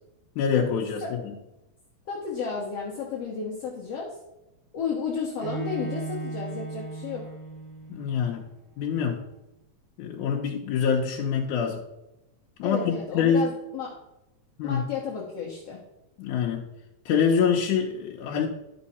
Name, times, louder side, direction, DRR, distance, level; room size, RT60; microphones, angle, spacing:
voice 1, 0.4-1.3 7.9-8.4 8.8-9.2 10.0-11.8 12.6-13.5 14.6-14.8 16.2-16.6 17.1-18.5, left 6 dB, 80° left, -2 dB, 2.2 m, -25 dB
voice 2, 2.1-4.2 4.7-7.3 12.6-13.9 14.6-15.8, left 6 dB, 60° left, -2 dB, 2.0 m, -32 dB
Bowed string instrument, 5.4-8.4, right 4 dB, 70° right, 3.0 m, -36 dB
11.0 x 5.5 x 4.2 m, 0.91 s
omnidirectional pair, 3.5 m